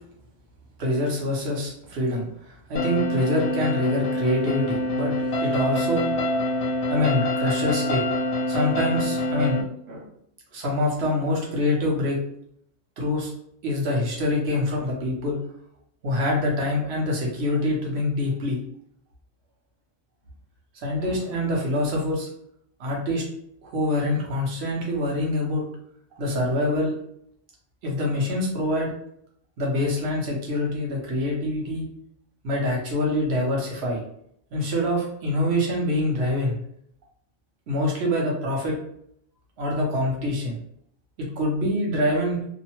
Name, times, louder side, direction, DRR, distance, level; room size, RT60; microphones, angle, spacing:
voice 1, 0.8-6.1 6.9-8.1 8.5-9.6 9.9-10.1 10.5-12.3 13.0-13.3 13.6-15.5 16.0-18.6 20.8-22.3 22.8-23.3 23.6-25.7 26.2-27.0 27.8-28.9 29.6-31.8 32.4-34.0 34.5-36.6 37.7-38.8 39.6-40.6 41.2-42.4, left 1 dB, 70° right, -2 dB, 1.1 m, -25 dB
sound 1, 2.8-9.6, left 1 dB, 80° left, 0.8 m, -26 dB
2.7 x 2.0 x 2.8 m, 0.70 s
omnidirectional pair, 1.1 m